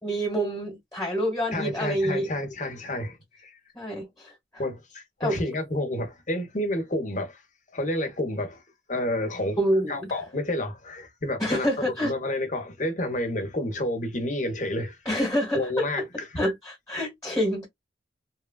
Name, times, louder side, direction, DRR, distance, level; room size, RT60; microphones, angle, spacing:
voice 1, 0.0-2.3 3.7-4.6 5.2-5.4 9.6-10.0 11.4-12.1 15.0-16.0 16.4-17.7, equal, 15° left, 1.3 m, -27 dB
voice 2, 1.5-3.5 4.6-7.4 7.7-8.6 8.9-9.6 9.9-11.7 12.0-15.0 15.5-16.4, left 1 dB, 45° left, 0.9 m, -30 dB
3.1 x 2.3 x 2.2 m
head